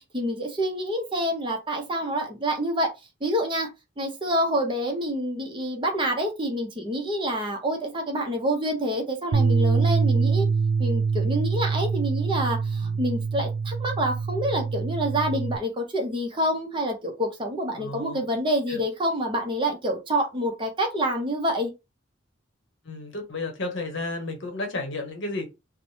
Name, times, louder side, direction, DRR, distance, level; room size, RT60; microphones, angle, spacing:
voice 1, 0.0-2.9 3.2-3.7 4.0-10.5 10.8-21.7, equal, 25° right, 0.6 m, -27 dB
sound 1, 9.3-15.6, right 5 dB, 85° right, 0.3 m, -24 dB
voice 2, 17.7-18.3 18.7-18.8 22.9-25.5, left 2 dB, 60° left, 0.8 m, -32 dB
3.1 x 2.0 x 2.7 m
head